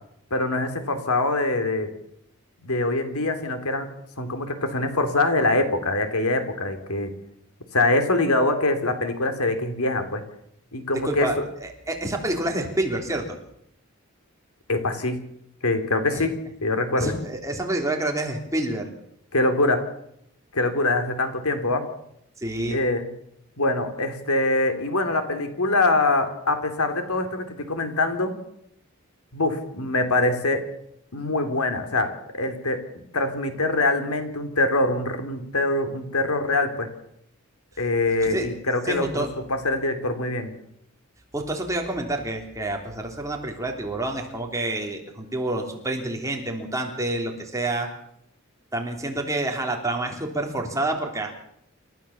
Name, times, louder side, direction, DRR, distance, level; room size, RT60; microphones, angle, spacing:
voice 1, 0.3-1.9 2.6-3.9 4.2-7.1 7.7-10.2 10.7-11.3 14.7-15.2 15.6-16.3 16.6-17.1 19.3-19.8 20.5-21.9 22.7-23.1 23.6-28.3 29.3-30.7 31.1-32.8 33.1-36.9 37.8-40.5, left 2 dB, 90° left, 7 dB, 3.2 m, -24 dB
voice 2, 11.0-13.4 16.1-16.3 17.0-18.9 22.4-22.8 38.2-38.5 38.9-39.3 41.3-47.9 48.7-51.3, right 1 dB, 15° right, 2 dB, 3.1 m, -28 dB
28.0 x 14.0 x 7.1 m, 0.74 s
head